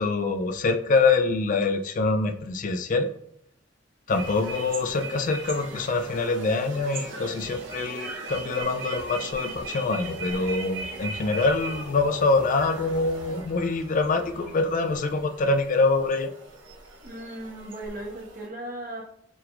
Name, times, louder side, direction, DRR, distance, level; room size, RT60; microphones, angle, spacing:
voice 1, 0.0-3.1 4.1-16.3, left 3 dB, 45° left, 6 dB, 0.4 m, -25 dB
sound 1, 4.1-18.5, right 3 dB, 80° right, 1.0 m, -39 dB
voice 2, 17.0-19.0, right 1 dB, 50° right, -1 dB, 1.2 m, -37 dB
5.7 x 3.5 x 2.5 m, 0.75 s
head